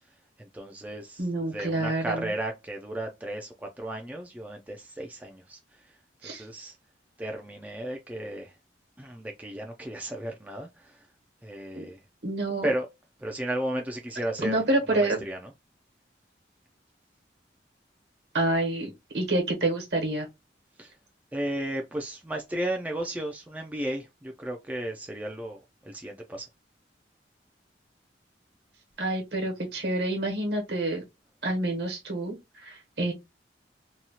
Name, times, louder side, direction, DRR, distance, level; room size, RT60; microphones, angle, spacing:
voice 1, 0.4-1.3 1.5-5.6 6.2-6.7 7.2-8.5 9.0-11.0 11.4-12.0 12.6-12.9 13.2-14.6 14.9-15.4 20.8-20.9 21.3-26.5, right 1 dB, 10° right, 0.3 m, -34 dB
voice 2, 1.2-2.3 6.2-6.4 11.7-11.9 12.2-12.7 14.4-15.2 18.3-20.3 29.0-31.0 31.4-33.1, right 2 dB, 65° right, 1.1 m, -28 dB
2.8 x 2.3 x 2.8 m
head